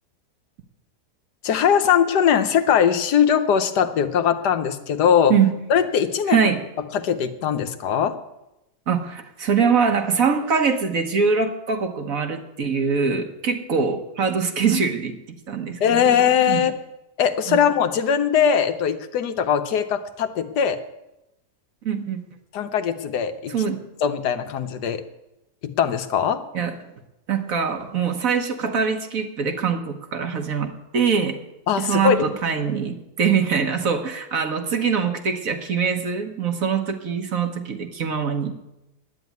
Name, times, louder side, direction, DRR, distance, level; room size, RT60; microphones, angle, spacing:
voice 1, 1.4-5.3 5.7-6.5 6.9-8.2 15.8-16.7 17.2-20.8 22.5-23.5 24.0-25.0 25.8-26.4 31.7-32.3, left 8 dB, 85° left, 9 dB, 1.5 m, -20 dB
voice 2, 6.3-6.6 8.9-15.2 15.5-16.0 16.5-16.6 17.5-17.6 21.8-22.2 23.5-23.8 26.5-26.8 27.3-31.4 31.8-38.5, right 6 dB, 60° right, 6 dB, 1.5 m, -23 dB
10.0 x 9.5 x 9.5 m, 0.93 s
omnidirectional pair, 1.7 m